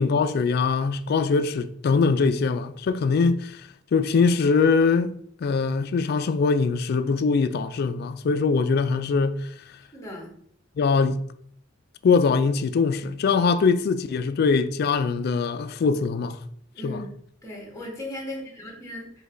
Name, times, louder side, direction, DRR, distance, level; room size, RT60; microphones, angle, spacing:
voice 1, 0.0-3.6 3.9-5.1 5.4-9.5 10.8-11.2 12.0-16.4 16.8-17.0, left 4 dB, 50° left, 0.3 m, -22 dB
voice 2, 9.9-10.3 16.7-17.1 17.4-19.1, left 1 dB, 15° left, 1.3 m, -37 dB
5.1 x 2.3 x 3.7 m
head